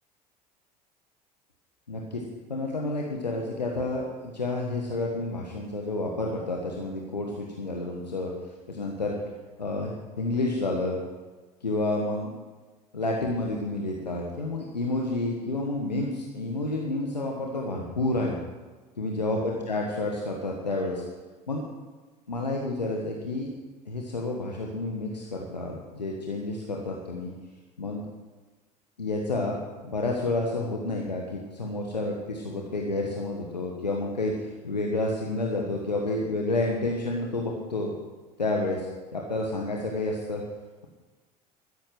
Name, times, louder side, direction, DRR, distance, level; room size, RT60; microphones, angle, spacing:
voice 1, 1.9-2.2 2.5-8.3 8.7-9.2 9.6-11.0 11.6-12.3 12.9-18.3 19.0-21.0 21.5-21.6 22.3-23.5 23.9-27.3 27.8-28.0 29.0-29.6 29.8-37.9 38.4-40.4, left 2 dB, 90° left, -1 dB, 1.4 m, -30 dB
13.0 x 10.5 x 6.1 m, 1.3 s
figure-of-eight pair, 70°, 21 cm